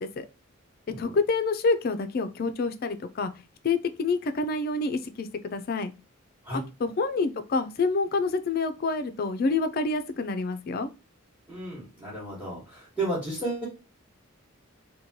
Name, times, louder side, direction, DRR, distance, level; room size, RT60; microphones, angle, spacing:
voice 1, 1.0-3.3 3.6-5.9 6.8-10.9, left 3 dB, 45° left, 10 dB, 0.3 m, -27 dB
voice 2, 11.5-13.7, right 2 dB, 10° right, -6 dB, 1.0 m, -33 dB
3.0 x 2.2 x 2.7 m, 0.29 s
head